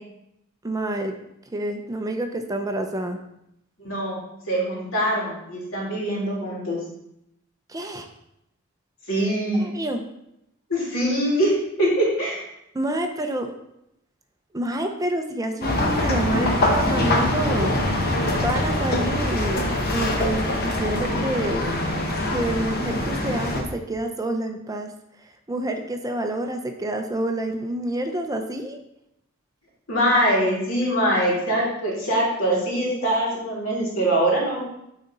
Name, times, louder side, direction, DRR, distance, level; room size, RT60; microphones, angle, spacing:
voice 1, 0.6-1.2 1.5-3.2 7.7-8.1 9.6-10.0 12.7-13.5 14.5-17.7 18.3-19.6 19.9-21.7 22.3-24.9 25.5-28.8, right 1 dB, 15° right, 5 dB, 0.6 m, -28 dB
voice 2, 3.8-4.2 4.5-6.8 9.1-9.7 10.7-11.5 11.8-12.4 29.9-34.7, right 1 dB, 80° left, -5 dB, 2.9 m, -23 dB
sound 1, 15.6-23.6, left 1 dB, 50° left, 1.1 m, -23 dB
9.1 x 4.1 x 3.9 m, 0.82 s
head